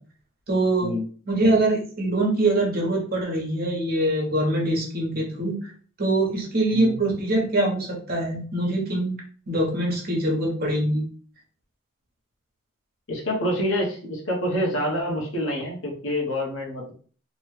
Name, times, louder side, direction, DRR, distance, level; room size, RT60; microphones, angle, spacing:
voice 1, 0.5-0.9 1.3-5.7 6.0-9.1 9.5-11.1, right 2 dB, 45° right, -2 dB, 1.0 m, -23 dB
voice 2, 13.1-16.9, equal, 75° left, -1 dB, 1.0 m, -27 dB
2.9 x 2.2 x 3.2 m, 0.43 s
head